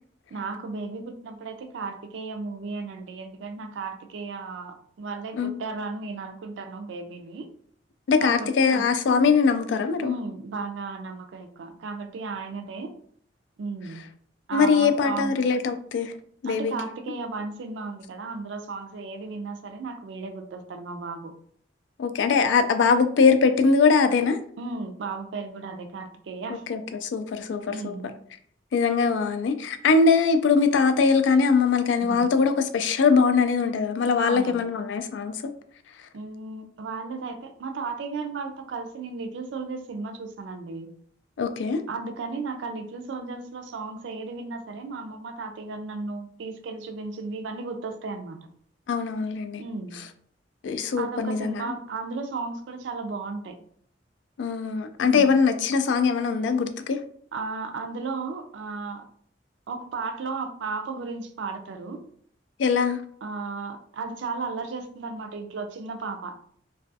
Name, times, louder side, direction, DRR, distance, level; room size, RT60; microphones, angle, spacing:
voice 1, 0.3-7.5 8.2-8.9 10.0-12.9 13.6-14.0 14.5-15.4 16.4-21.3 24.6-26.6 27.7-28.1 32.0-32.3 34.2-34.6 36.1-40.9 41.9-48.4 49.6-50.0 51.0-53.6 55.0-55.3 57.3-59.0 59.7-62.0 63.2-66.4, right 4 dB, 80° right, 0.4 m, -34 dB
voice 2, 8.1-10.2 14.5-16.1 16.4-16.7 22.0-24.4 26.7-27.9 28.7-35.4 41.4-41.8 48.9-49.6 50.6-51.6 54.4-57.0 62.6-63.0, left 5 dB, 75° left, 0.3 m, -22 dB
2.3 x 2.3 x 2.6 m
head